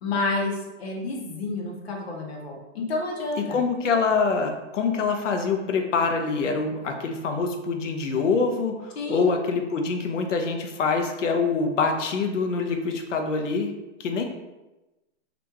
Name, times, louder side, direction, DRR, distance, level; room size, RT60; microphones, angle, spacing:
voice 1, 0.0-3.6 9.0-9.3, left 2 dB, 60° left, -1 dB, 0.9 m, -29 dB
voice 2, 3.5-13.7 14.0-14.2, left 4 dB, 85° left, 4 dB, 0.7 m, -25 dB
2.9 x 2.5 x 3.4 m, 1.0 s
hypercardioid pair, 175°, 36 cm